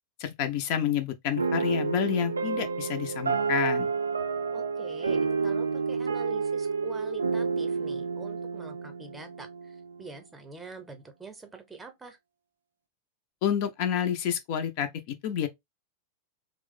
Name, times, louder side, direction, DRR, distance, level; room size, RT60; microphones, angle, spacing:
voice 1, 0.2-3.9 13.4-15.5, left 9 dB, 45° left, 0.4 m, -29 dB
sound 1, 1.4-9.9, right 5 dB, 75° right, 0.3 m, -30 dB
voice 2, 4.5-12.2, right 2 dB, 10° right, 0.7 m, -45 dB
3.0 x 2.0 x 3.5 m
figure-of-eight pair, 90°, 0 cm